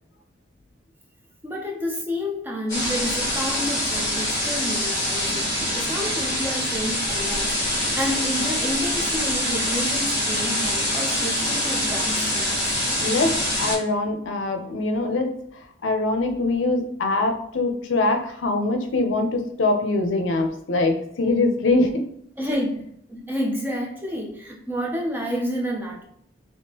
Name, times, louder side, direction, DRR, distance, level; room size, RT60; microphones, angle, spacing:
voice 1, 1.4-12.8 22.4-22.7 23.1-26.0, equal, 10° right, -1 dB, 0.5 m, -30 dB
sound 1, 2.7-13.8, left 1 dB, 15° left, 1.3 m, -25 dB
voice 2, 13.0-15.3 15.8-22.1, left 2 dB, 80° left, 6 dB, 0.5 m, -23 dB
3.6 x 2.8 x 2.8 m, 0.69 s
head